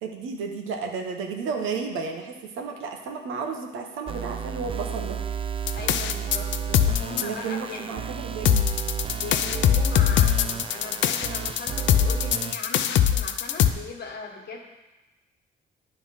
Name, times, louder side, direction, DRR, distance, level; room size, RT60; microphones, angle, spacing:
voice 1, 0.0-5.2 7.2-8.7, right 5 dB, 85° right, 3 dB, 1.0 m, -32 dB
sound 1, 4.1-12.5, right 7 dB, 25° right, 0.4 m, -32 dB
sound 2, 5.7-7.2 8.4-13.7, left 10 dB, 70° left, 0.5 m, -22 dB
voice 2, 5.7-8.0 9.1-14.6, left 4 dB, 55° left, 0 dB, 1.5 m, -38 dB
9.6 x 3.4 x 5.6 m, 1.1 s
cardioid pair, 90°, 20 cm